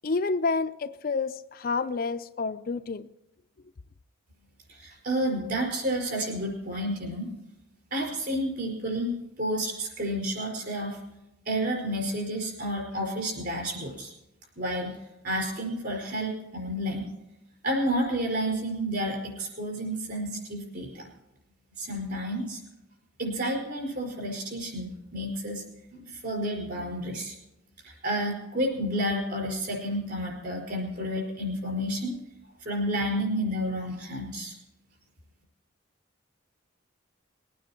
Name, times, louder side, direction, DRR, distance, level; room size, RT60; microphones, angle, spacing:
voice 1, 0.0-3.1, left 4 dB, 45° left, 10 dB, 0.4 m, -29 dB
voice 2, 4.7-7.3 7.9-9.1 9.4-11.0 11.5-14.1 14.6-15.0 15.2-17.1 17.6-21.1 21.8-22.6 23.2-25.6 25.9-27.3 28.0-32.1 32.6-34.5, equal, 50° right, 0 dB, 4.9 m, -30 dB
20.5 x 9.4 x 4.4 m, 0.90 s
head